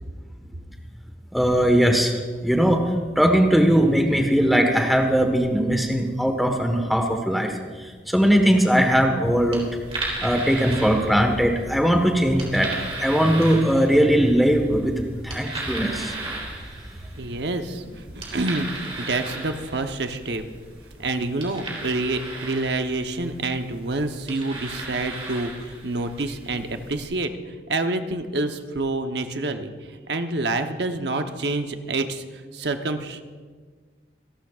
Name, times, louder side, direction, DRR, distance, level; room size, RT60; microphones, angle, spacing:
voice 1, 1.3-2.2 2.4-2.8 3.1-7.5 7.8-9.6 10.2-16.1, equal, ahead, 3 dB, 1.3 m, -20 dB
sound 1, 9.2-27.1, right 2 dB, 35° right, 3.6 m, -36 dB
voice 2, 17.2-20.4 21.0-33.2, right 2 dB, 70° right, 7 dB, 0.9 m, -28 dB
27.0 x 11.5 x 2.4 m, 1.5 s
head